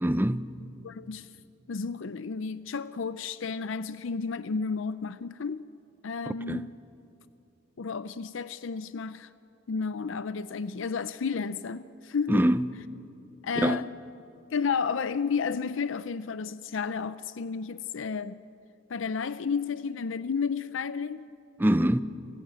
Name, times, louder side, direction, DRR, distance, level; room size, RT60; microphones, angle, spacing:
voice 1, 0.0-0.5 6.3-6.7 12.3-12.8 13.6-13.9 21.6-22.0, right 1 dB, 10° right, 0.5 m, -25 dB
voice 2, 0.8-1.3 1.7-5.6 6.0-6.7 7.8-9.3 9.7-12.5 13.4-13.9 14.5-18.4 18.9-21.3, left 5 dB, 80° left, 0.5 m, -32 dB
29.5 x 17.5 x 9.1 m
head